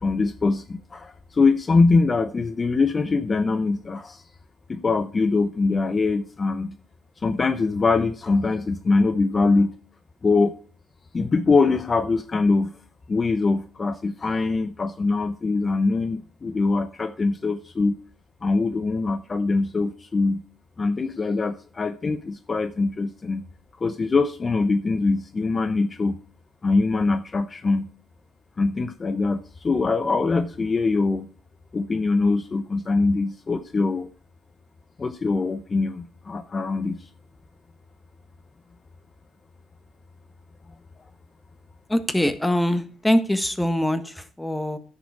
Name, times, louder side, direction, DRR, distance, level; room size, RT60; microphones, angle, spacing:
voice 1, 0.0-4.2 4.7-6.8 7.2-9.7 10.2-10.5 11.1-12.7 13.1-18.0 18.4-20.4 20.8-23.4 23.8-26.2 26.6-27.9 28.6-31.3 31.7-34.1 35.0-37.0, left 3 dB, 35° left, 11 dB, 0.7 m, -23 dB
voice 2, 41.9-44.8, left 1 dB, 5° left, 10 dB, 1.3 m, -23 dB
10.0 x 6.8 x 4.8 m, 0.41 s
cardioid pair, 90°, 0 cm